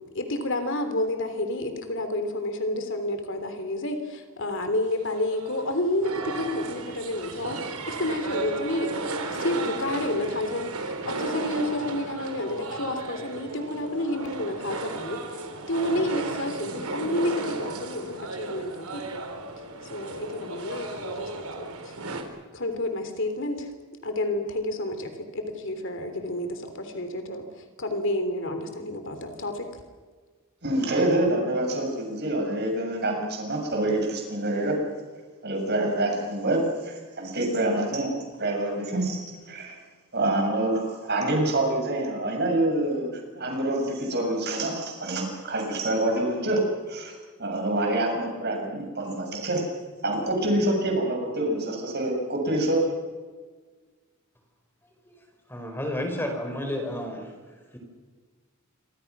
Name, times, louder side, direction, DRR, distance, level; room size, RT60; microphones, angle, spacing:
voice 1, 0.1-8.9 9.3-15.2 15.7-19.0 19.9-21.9 22.5-23.7 24.0-27.5 27.8-29.7, left 1 dB, 55° left, 7 dB, 3.4 m, -30 dB
sound 1, 5.0-22.2, right 3 dB, 80° right, 4.0 m, -34 dB
voice 2, 30.6-34.8 35.4-38.1 38.4-39.8 40.1-47.1 47.4-49.6 50.0-52.8, right 1 dB, 45° right, 2 dB, 7.2 m, -26 dB
voice 3, 55.0-57.8, left 1 dB, 10° left, 3 dB, 5.1 m, -32 dB
28.0 x 25.5 x 6.2 m, 1.4 s
head